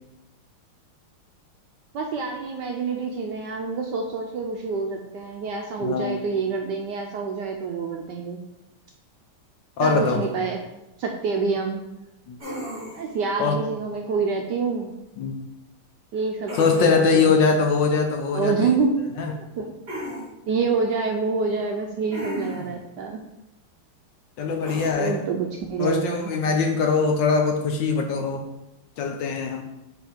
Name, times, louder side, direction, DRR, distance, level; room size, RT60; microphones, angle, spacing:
voice 1, 1.9-8.4 9.8-10.6 11.0-11.8 12.9-14.9 16.1-17.4 18.3-19.0 19.3-19.7 20.5-23.2 25.0-26.3, right 4 dB, 75° right, 2 dB, 1.0 m, -27 dB
voice 2, 5.8-6.2 9.8-10.2 12.3-12.4 13.4-13.6 15.2-15.4 16.6-18.8 19.2-19.3 24.4-25.2 25.8-28.4 29.0-29.6, left 4 dB, 70° left, 4 dB, 1.2 m, -22 dB
sound 1, 12.4-13.2 16.5-17.3 19.9-20.2 22.1-22.8 24.6-24.9, equal, 25° right, 2.7 m, -34 dB
5.0 x 4.6 x 5.0 m, 0.92 s
omnidirectional pair, 2.4 m